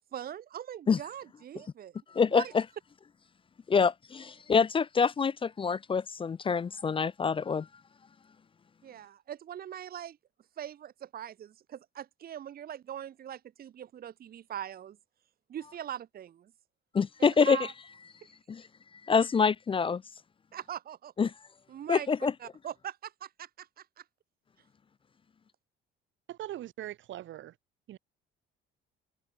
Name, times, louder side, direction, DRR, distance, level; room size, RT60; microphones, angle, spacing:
voice 1, 0.1-1.9 2.3-2.5 8.8-10.2 10.6-15.0 15.5-16.5 17.2-17.7 20.5-21.3 21.7-24.0, right 10 dB, 45° right, 1.4 m, -41 dB
voice 2, 2.1-2.6 3.7-7.7 16.9-17.6 18.5-18.6 19.0-20.0 21.2-21.3 21.9-22.3, left 5 dB, 25° left, 0.6 m, -26 dB
voice 3, 26.3-27.5 27.9-28.0, right 13 dB, 65° right, 6.8 m, -41 dB
cardioid pair, 120°, 21 cm